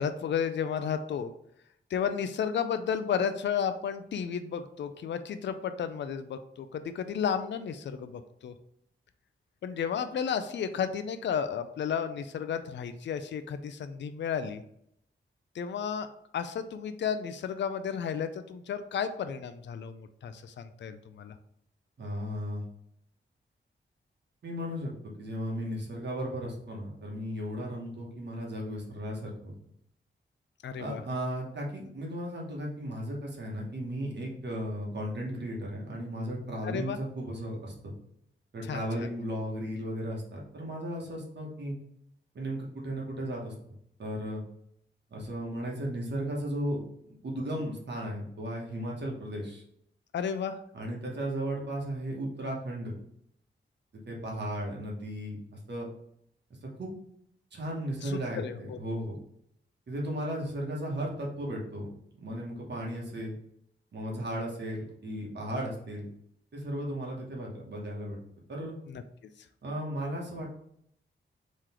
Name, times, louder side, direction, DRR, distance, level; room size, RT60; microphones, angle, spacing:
voice 1, 0.0-1.3 1.9-8.5 9.6-14.6 15.5-16.1 16.3-21.3 30.6-31.0 36.6-37.0 38.6-39.1 50.1-50.6 58.0-58.8 68.9-69.0, left 7 dB, 60° left, 9 dB, 0.4 m, -33 dB
voice 2, 22.0-22.6 24.4-24.9 25.2-29.5 30.8-37.9 38.5-41.7 42.3-43.5 44.0-44.4 45.1-46.8 47.1-49.6 50.7-53.0 54.1-55.4 55.7-55.9 56.6-56.9 57.5-59.2 59.9-61.9 62.2-63.4 63.9-66.1 66.5-68.2 68.5-68.7 69.6-70.5, equal, 60° right, -2 dB, 1.2 m, -35 dB
3.8 x 3.1 x 4.3 m, 0.72 s
wide cardioid pair, 115°, 20 cm